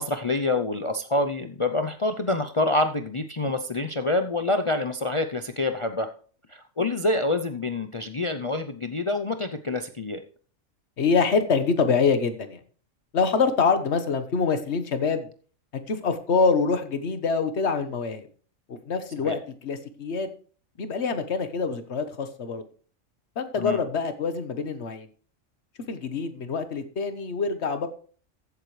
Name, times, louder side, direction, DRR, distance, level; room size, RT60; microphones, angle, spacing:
voice 1, 0.0-6.1 6.5-10.2 19.2-19.4 23.6-23.8, left 2 dB, 35° left, 8 dB, 0.5 m, -26 dB
voice 2, 11.0-12.6 13.1-15.3 15.9-18.3 18.7-20.3 20.8-22.6 23.4-25.1 25.9-27.9, left 5 dB, 55° left, 10 dB, 1.4 m, -25 dB
14.5 x 8.3 x 3.2 m, 0.42 s
omnidirectional pair, 1.4 m